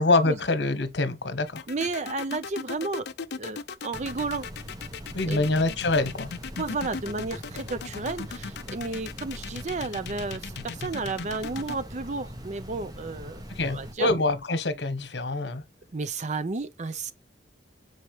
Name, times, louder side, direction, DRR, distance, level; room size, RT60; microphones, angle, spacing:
voice 1, 0.0-1.6 5.1-6.3 13.5-15.6, left 2 dB, 90° left, 1.1 m, -25 dB
sound 1, 1.5-11.7, left 5 dB, 70° left, 0.5 m, -38 dB
voice 2, 1.7-3.1 3.4-4.5 5.1-5.5 6.5-14.1 15.9-17.1, right 3 dB, 40° right, 0.6 m, -32 dB
sound 2, 3.9-13.9, equal, 20° right, 1.1 m, -42 dB
7.2 x 4.2 x 3.1 m
head